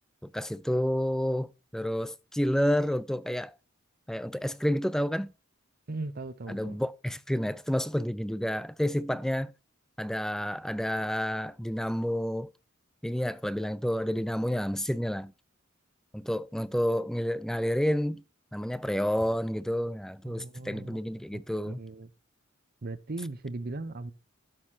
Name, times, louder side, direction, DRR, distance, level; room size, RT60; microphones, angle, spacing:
voice 1, 0.2-3.5 4.1-5.3 6.5-9.5 10.0-12.5 13.0-15.3 16.1-18.2 18.5-21.8, equal, ahead, 0.4 m, -30 dB
voice 2, 5.9-6.8 20.2-21.0 21.3-22.1 22.8-24.1, right 2 dB, 50° right, 0.7 m, -38 dB
12.0 x 6.4 x 2.8 m
head